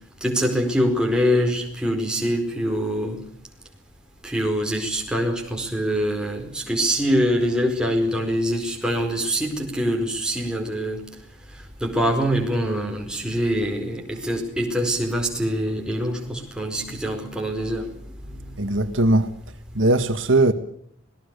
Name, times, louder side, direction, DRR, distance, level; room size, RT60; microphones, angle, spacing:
voice 1, 0.2-3.2 4.2-11.0 11.8-17.9 18.2-18.4, equal, 5° right, 4.7 m, -24 dB
voice 2, 18.6-19.3 19.8-20.5, right 2 dB, 70° right, 1.8 m, -19 dB
26.5 x 20.0 x 6.8 m
head